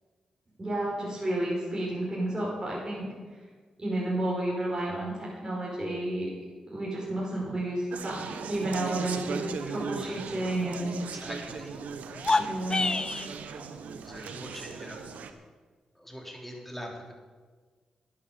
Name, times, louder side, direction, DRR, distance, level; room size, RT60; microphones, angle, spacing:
voice 1, 0.6-3.1 3.8-6.3 6.7-11.0 12.4-13.0, right 1 dB, 25° right, -6 dB, 5.0 m, -31 dB
Conversation, 7.9-15.3, right 6 dB, 80° right, 1.0 m, -38 dB
voice 2, 11.2-11.7 14.0-15.1 16.0-17.1, equal, 5° left, 0 dB, 3.5 m, -42 dB
sound 1, 12.1-13.3, left 3 dB, 30° left, 0.8 m, -27 dB
11.5 x 10.0 x 6.9 m, 1.5 s
supercardioid pair, 50°, 2 cm